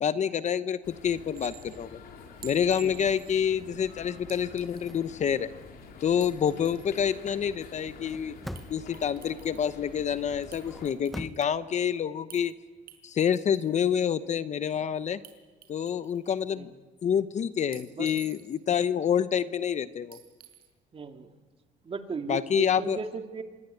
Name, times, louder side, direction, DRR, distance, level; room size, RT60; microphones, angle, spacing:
voice 1, 0.0-2.0 2.4-5.5 6.0-8.3 8.7-12.5 13.0-15.2 15.7-16.7 17.0-20.2 22.3-23.0, left 8 dB, 45° left, 13 dB, 0.9 m, -27 dB
sound 1, 0.8-10.9, left 5 dB, 70° left, 4.4 m, -48 dB
Chink clink, 1.3-1.8 2.4-3.5 4.3-5.0 6.0-7.0 8.5-8.7 8.9-9.8 10.5-11.5 12.3-12.5 12.9-13.7 15.2-15.3 15.6-16.5 17.7-18.7 20.1-20.7, right 10 dB, 70° right, 5.3 m, -50 dB
voice 2, 2.8-3.1 16.5-16.7 18.0-18.1 20.9-21.3 21.8-23.4, right 5 dB, 35° right, 5 dB, 2.3 m, -36 dB
sound 2, 4.6-5.0 7.9-9.0 10.4-11.5, equal, ahead, 0.8 m, -42 dB
26.0 x 20.5 x 9.2 m, 1.3 s
cardioid pair, 110°, 17 cm